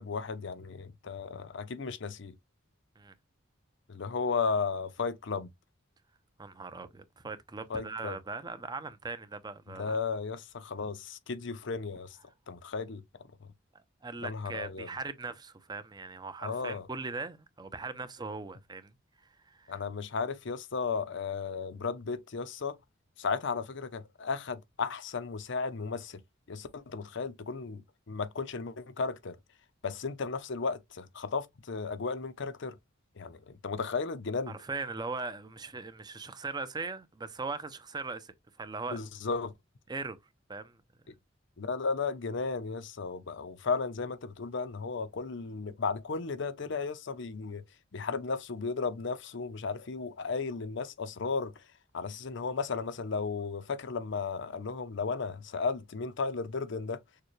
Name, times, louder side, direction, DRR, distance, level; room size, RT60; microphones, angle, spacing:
voice 1, 0.0-2.3 3.9-5.5 7.7-8.2 9.8-12.2 12.5-13.0 13.4-13.5 14.2-14.9 16.4-16.9 19.7-22.8 23.2-26.2 26.5-29.4 29.8-32.8 33.2-34.5 38.9-39.5 41.6-47.6 47.9-51.5 51.9-57.0, left 4 dB, 65° left, 0.7 m, -34 dB
voice 2, 6.4-10.0 14.0-18.9 19.4-19.7 34.5-39.0 39.9-40.2 40.5-40.8, right 3 dB, 20° right, 0.6 m, -39 dB
6.6 x 2.2 x 3.2 m
head